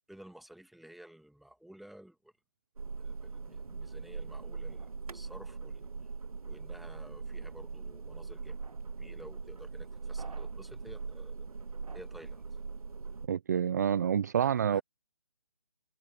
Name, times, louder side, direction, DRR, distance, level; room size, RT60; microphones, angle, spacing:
voice 1, 0.1-2.3 3.0-5.9 6.4-8.6 9.0-11.5 11.9-12.4 14.4-14.8, right 1 dB, ahead, 2.2 m, -53 dB
sound 1, 2.8-13.3, right 4 dB, 75° right, 1.5 m, -41 dB
voice 2, 13.3-14.8, right 8 dB, 30° right, 0.4 m, -28 dB
figure-of-eight pair, 155°, 19 cm